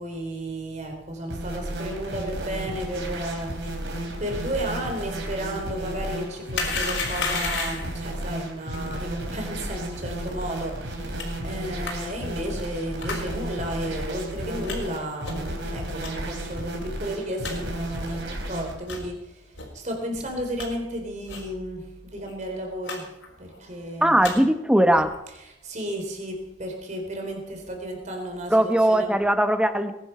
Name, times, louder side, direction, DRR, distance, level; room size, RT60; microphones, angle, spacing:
voice 1, 0.0-3.6 4.2-19.4 19.7-23.1 23.4-24.3 25.6-29.2, right 1 dB, 40° right, 2 dB, 3.9 m, -33 dB
sound 1, 1.3-18.8, right 1 dB, 65° right, 3.7 m, -33 dB
sound 2, 6.5-8.0 11.2-11.3 11.8-11.9 13.0-13.2 13.8-13.9 14.6-14.8 15.2-15.5 16.0-16.1 16.7-16.8 17.0-17.1 17.4-17.5 18.1-18.2 18.8-19.0 19.5-19.7 20.1-20.7 21.3-21.5 21.8-21.9 22.1-22.3 22.8-23.0 23.2-23.6 24.0-24.3 24.9-25.2, left 4 dB, 80° left, 4.2 m, -32 dB
voice 2, 24.0-25.1 28.5-29.9, right 1 dB, 5° right, 8 dB, 0.9 m, -19 dB
20.0 x 11.0 x 5.6 m, 0.88 s
head